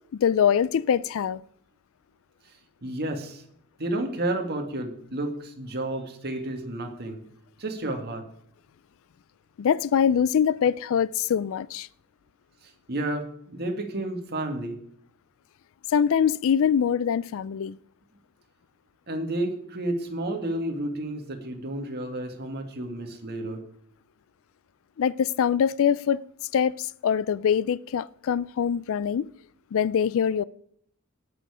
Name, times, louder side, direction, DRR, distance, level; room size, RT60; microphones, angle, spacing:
voice 1, 0.1-1.4 9.6-11.9 15.9-17.8 25.0-26.2 26.5-29.3 29.7-30.4, left 8 dB, 65° left, 0.4 m, -23 dB
voice 2, 2.8-3.4 3.8-7.2 7.6-8.2 12.6-14.8 19.1-23.6, right 1 dB, 50° right, 2.1 m, -31 dB
18.0 x 7.0 x 5.0 m
head